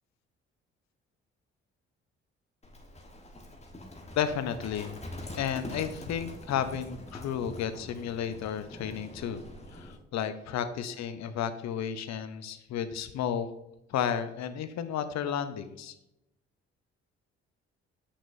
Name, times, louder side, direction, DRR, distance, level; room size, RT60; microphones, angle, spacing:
Livestock farm animals working animals, 2.6-10.0, left 1 dB, 20° left, 1.3 m, -44 dB
voice 1, 4.2-5.0 5.4-9.4 9.7-13.5 13.9-15.9, left 8 dB, 55° left, 10 dB, 0.7 m, -32 dB
8.1 x 6.0 x 2.6 m, 0.88 s
figure-of-eight pair, 45°, 33 cm